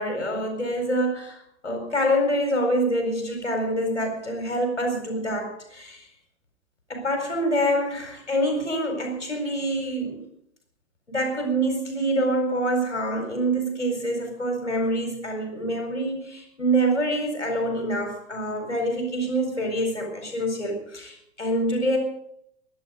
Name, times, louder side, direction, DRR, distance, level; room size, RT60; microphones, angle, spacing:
voice 1, 0.0-6.0 6.9-10.2 11.1-22.0, right 1 dB, 90° left, 3 dB, 4.6 m, -26 dB
22.5 x 11.5 x 5.1 m, 0.72 s
figure-of-eight pair, 85°, 34 cm